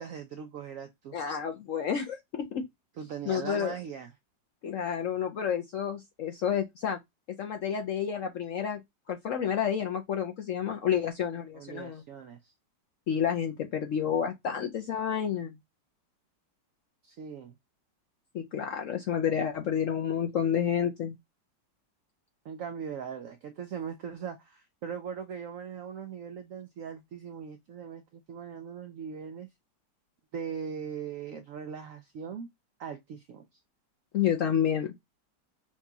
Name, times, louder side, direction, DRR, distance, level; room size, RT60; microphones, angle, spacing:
voice 1, 0.0-1.2 3.0-4.1 11.5-12.5 17.0-17.5 22.4-29.5 30.3-32.5 32.8-33.6, right 7 dB, 90° right, 0.7 m, -40 dB
voice 2, 1.1-2.6 3.3-3.7 4.6-7.0 7.4-8.8 9.1-12.0 13.1-15.6 18.3-21.2 34.1-34.9, left 8 dB, 70° left, 0.7 m, -30 dB
5.9 x 2.3 x 2.7 m
omnidirectional pair, 1.9 m